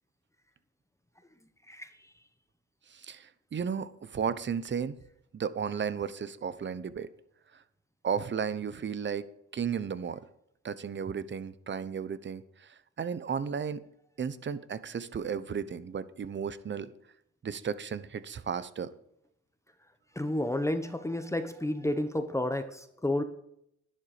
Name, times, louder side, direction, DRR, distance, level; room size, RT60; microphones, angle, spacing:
voice 1, 2.9-5.0 5.3-7.1 8.0-9.2 9.5-10.2 10.6-13.8 14.2-16.9 17.4-18.9, right 7 dB, 40° right, 15 dB, 0.9 m, -34 dB
voice 2, 20.1-23.2, left 1 dB, 10° left, 9 dB, 1.1 m, -31 dB
11.5 x 11.0 x 5.0 m, 0.74 s
cardioid pair, 90°, 30 cm